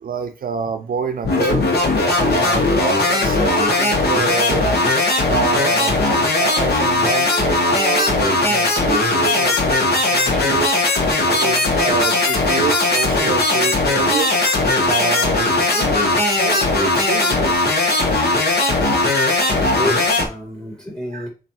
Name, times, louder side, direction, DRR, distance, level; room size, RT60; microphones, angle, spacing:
voice 1, 0.0-1.7 2.1-4.7 5.3-10.8 11.3-14.4 14.8-16.2 16.4-17.7 21.1-21.3, right 7 dB, 65° right, 0.4 m, -27 dB
sound 1, 1.2-20.3, left 2 dB, 90° left, 0.8 m, -18 dB
voice 2, 19.6-21.3, left 1 dB, 5° left, 1.8 m, -29 dB
3.4 x 2.4 x 4.1 m
wide cardioid pair, 90°, 16 cm